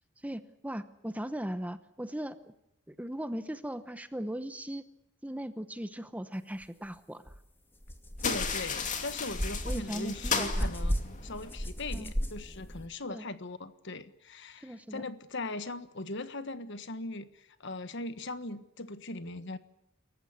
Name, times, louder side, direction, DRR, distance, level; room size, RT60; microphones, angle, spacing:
voice 1, 0.2-2.5 2.9-4.8 5.2-7.3 9.6-10.7 11.9-12.1 13.1-13.3 14.6-15.0, equal, 5° right, 11 dB, 0.9 m, -38 dB
sound 1, 7.3-7.4 7.8-12.9, equal, 10° left, 2.2 m, -35 dB
voice 2, 8.2-19.6, left 2 dB, 55° left, 12 dB, 1.5 m, -40 dB
sound 2, 8.2-11.6, left 5 dB, 35° left, 2.7 m, -35 dB
27.5 x 15.0 x 9.8 m, 0.83 s
head